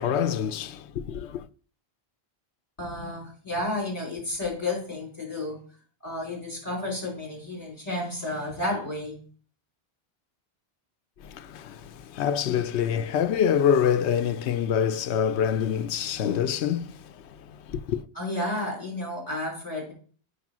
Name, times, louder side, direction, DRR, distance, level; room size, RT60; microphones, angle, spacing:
voice 1, 0.0-1.5 11.2-18.0, left 8 dB, 90° left, 0.9 m, -26 dB
voice 2, 2.8-5.6 6.0-9.2 18.1-19.9, left 1 dB, 35° left, 5.0 m, -31 dB
8.5 x 6.5 x 6.0 m
omnidirectional pair, 1.1 m